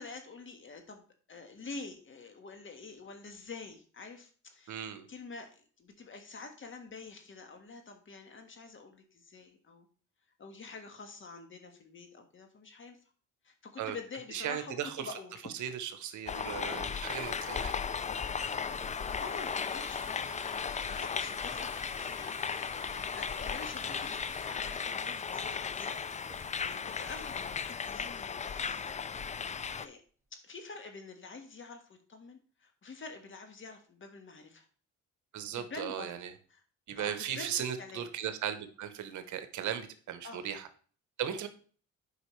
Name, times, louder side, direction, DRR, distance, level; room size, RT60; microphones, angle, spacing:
voice 1, 0.0-9.9 10.4-13.0 13.4-15.5 19.2-20.3 20.7-22.3 23.1-29.0 29.8-30.0 30.4-34.7 35.5-36.6 36.9-38.1 40.2-40.4, left 4 dB, 40° left, 5 dB, 1.5 m, -47 dB
voice 2, 4.7-5.1 13.8-14.0 14.3-15.1 15.6-17.7 35.3-36.3 36.9-40.7 41.2-41.5, right 9 dB, 75° right, 9 dB, 1.0 m, -37 dB
sound 1, 16.3-29.9, left 6 dB, 25° left, 0.4 m, -36 dB
sound 2, 16.7-28.2 28.5-28.8 29.1-29.2 29.6-30.0, right 2 dB, 10° right, 1.8 m, -54 dB
8.0 x 5.1 x 3.2 m, 0.42 s
cardioid pair, 90°, 30 cm